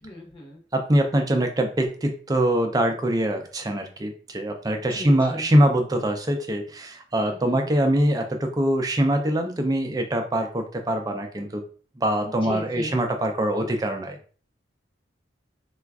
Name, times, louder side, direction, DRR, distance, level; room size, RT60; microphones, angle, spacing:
voice 1, 0.0-0.6 4.9-5.5 7.2-7.7 12.2-13.0, left 1 dB, 30° left, -1 dB, 0.8 m, -37 dB
voice 2, 0.7-11.6 12.0-14.2, right 1 dB, 20° right, 5 dB, 0.4 m, -23 dB
4.2 x 2.3 x 2.3 m, 0.41 s
head